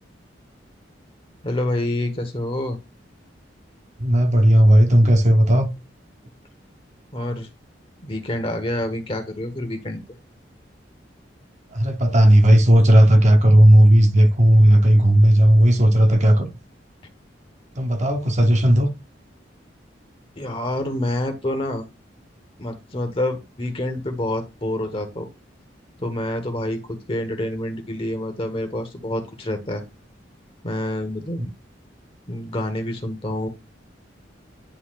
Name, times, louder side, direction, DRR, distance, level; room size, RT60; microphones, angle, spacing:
voice 1, 1.4-2.8 7.1-7.5 8.0-10.0 20.4-21.8 22.6-25.3 26.0-29.8 30.6-31.4 32.3-33.5, left 1 dB, 30° left, 1.2 m, -27 dB
voice 2, 4.0-5.7 11.7-16.5 17.8-18.9 31.4-31.5, right 1 dB, 40° right, 0.9 m, -14 dB
10.0 x 4.1 x 2.5 m
head